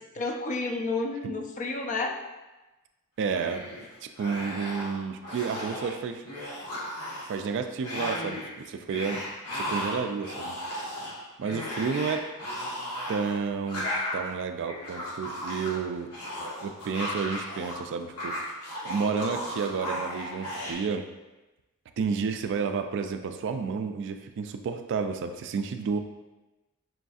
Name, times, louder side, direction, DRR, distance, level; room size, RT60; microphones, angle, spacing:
voice 1, 0.2-2.2, left 3 dB, 35° left, 3 dB, 0.4 m, -30 dB
voice 2, 3.2-3.7 4.0-6.2 7.3-9.2 9.5-10.6 11.4-12.3 13.1-13.9 14.1-16.1 16.6-18.4 18.9-21.1 22.0-26.0, right 5 dB, 55° right, 7 dB, 0.3 m, -31 dB
sound 1, 3.3-3.9 4.2-5.0 5.2-5.9 6.2-7.5 7.8-8.5 8.9-17.8 18.0-20.7, equal, 80° left, 1.2 m, -35 dB
6.2 x 2.5 x 2.3 m, 1.1 s
head